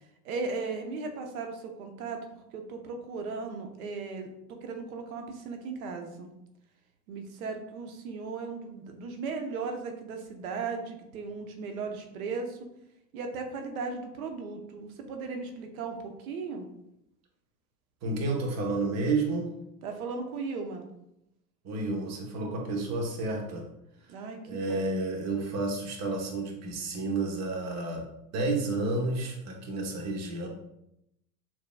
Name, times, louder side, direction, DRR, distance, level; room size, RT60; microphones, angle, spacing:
voice 1, 0.2-6.3 7.1-12.6 13.1-16.7 19.8-20.9 24.1-24.9, right 4 dB, 60° right, 4 dB, 1.0 m, -37 dB
voice 2, 18.0-19.5 21.6-23.7 24.5-28.0 28.3-30.5, right 2 dB, 30° right, 0 dB, 1.2 m, -30 dB
6.7 x 3.0 x 2.3 m, 0.83 s
hypercardioid pair, 95°, 49 cm